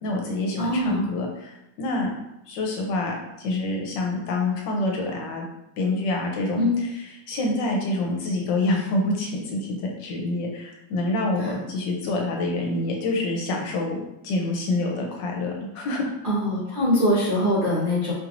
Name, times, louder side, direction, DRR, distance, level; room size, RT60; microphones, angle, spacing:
voice 1, 0.0-2.1 2.5-5.4 5.8-6.7 7.3-14.0 14.2-16.0, left 2 dB, 75° left, 0 dB, 1.3 m, -27 dB
voice 2, 0.6-1.1 6.6-6.7 11.4-11.5 16.2-18.1, left 1 dB, 40° right, -9 dB, 0.8 m, -23 dB
4.4 x 3.1 x 2.5 m, 0.89 s
omnidirectional pair, 2.1 m